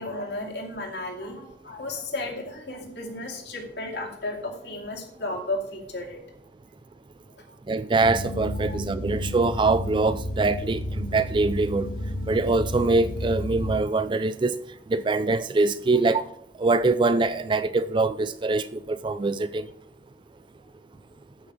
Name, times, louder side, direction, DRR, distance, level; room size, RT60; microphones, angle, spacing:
voice 1, 0.0-6.2 7.4-7.5 8.7-8.8, left 2 dB, 65° left, 2.5 m, -34 dB
voice 2, 7.7-11.9 12.3-14.6 14.9-16.2 16.6-19.7, right 3 dB, 25° right, 0.3 m, -23 dB
sound 1, 8.0-13.8, left 1 dB, 50° left, 2.0 m, -32 dB
13.0 x 5.9 x 5.0 m
head